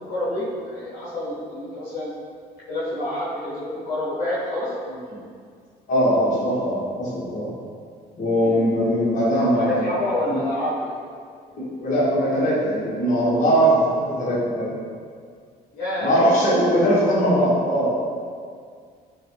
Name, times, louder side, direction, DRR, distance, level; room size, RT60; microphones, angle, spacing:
voice 1, 0.0-2.1 2.7-4.7 8.4-8.5 9.0-9.1 9.4-10.9 15.7-16.1, left 1 dB, 70° left, -11 dB, 1.0 m, -28 dB
voice 2, 5.9-7.5 8.2-9.8 10.3-10.4 11.6-14.7 16.0-18.0, equal, 50° left, -9 dB, 1.3 m, -20 dB
3.1 x 2.5 x 3.0 m, 2.1 s
cardioid pair, 110°, 17 cm